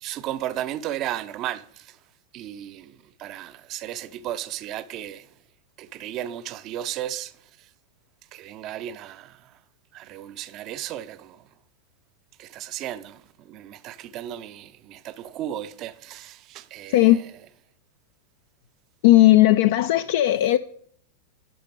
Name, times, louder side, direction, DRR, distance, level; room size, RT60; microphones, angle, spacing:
voice 1, 0.0-2.0 2.3-5.3 5.8-7.3 7.6-7.7 8.3-9.5 9.9-11.4 12.4-17.3, right 12 dB, 35° right, 0.5 m, -35 dB
voice 2, 19.0-20.6, left 15 dB, 55° left, 0.3 m, -16 dB
12.5 x 5.2 x 5.1 m
figure-of-eight pair, 90°, 0 cm